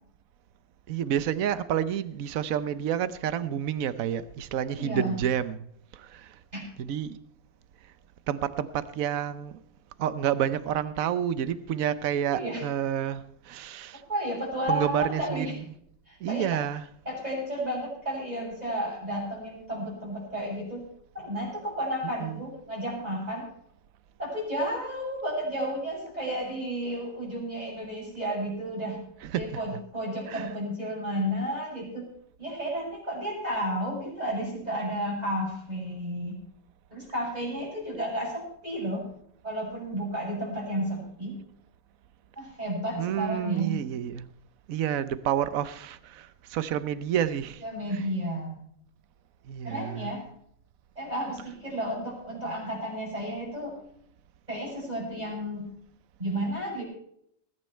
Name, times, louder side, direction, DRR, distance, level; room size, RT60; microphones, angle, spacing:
voice 1, 0.9-5.6 5.9-6.3 6.8-7.2 8.3-9.6 10.0-14.0 14.7-15.6 16.2-16.9 22.0-22.4 29.2-29.8 30.3-30.6 43.0-44.2 44.7-47.6 47.9-48.1 49.5-50.2, right 10 dB, 60° right, 1.1 m, -29 dB
voice 2, 4.7-5.2 6.5-6.6 12.3-12.6 14.1-15.6 16.1-16.6 17.1-20.8 21.1-23.5 24.2-29.0 29.3-32.1 32.4-36.4 36.9-39.0 39.4-41.4 42.4-43.8 47.6-48.6 49.6-50.2 51.0-53.7 54.5-55.7 56.2-56.8, equal, 25° right, 7.0 m, -32 dB
20.5 x 9.5 x 4.5 m
omnidirectional pair, 1.8 m